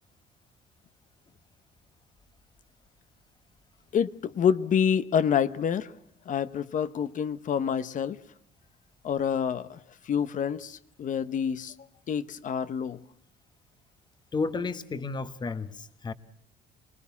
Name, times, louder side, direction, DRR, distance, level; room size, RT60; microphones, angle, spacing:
voice 1, 3.9-5.9 6.3-8.2 9.0-9.8 10.0-11.7 12.1-13.0, left 7 dB, 50° left, 0.9 m, -27 dB
voice 2, 14.3-16.1, left 4 dB, 25° left, 1.2 m, -32 dB
25.5 x 20.0 x 7.1 m
cardioid pair, 110°, 17 cm